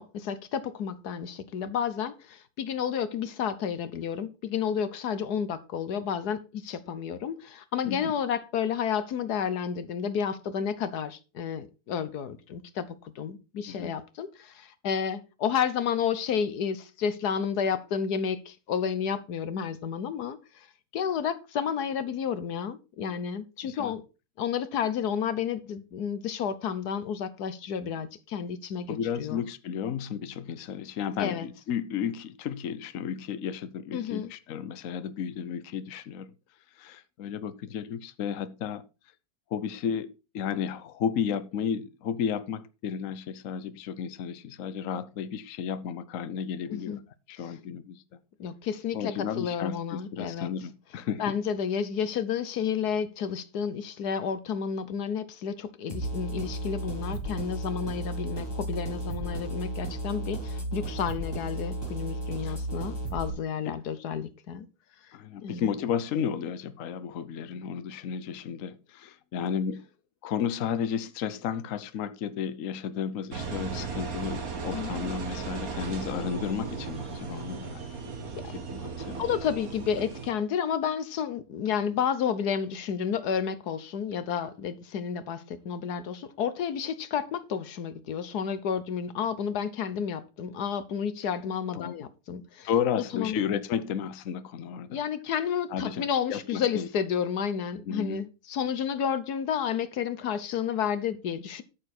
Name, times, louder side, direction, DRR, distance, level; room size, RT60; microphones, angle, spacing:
voice 1, 0.0-12.8 13.1-20.7 20.9-24.0 24.4-29.4 31.2-31.5 33.9-34.3 46.7-47.0 48.4-50.5 51.2-64.7 65.4-65.7 74.7-74.9 78.4-78.5 79.2-92.7 93.1-93.4 94.9-101.6, left 7 dB, 80° left, 1.5 m, -31 dB
voice 2, 23.6-24.0 28.9-36.3 36.8-38.8 39.5-47.0 47.3-48.0 48.9-51.4 62.4-62.6 63.6-63.7 65.1-69.8 70.2-78.1 78.4-79.2 91.7-91.9 92.6-95.0 95.7-96.9 97.9-98.2, left 7 dB, 60° left, 1.1 m, -33 dB
sound 1, 55.9-63.3, right 1 dB, 15° left, 3.9 m, -34 dB
Engine, 73.3-80.3, right 5 dB, 65° right, 2.1 m, -36 dB
13.0 x 6.9 x 4.3 m
omnidirectional pair, 1.7 m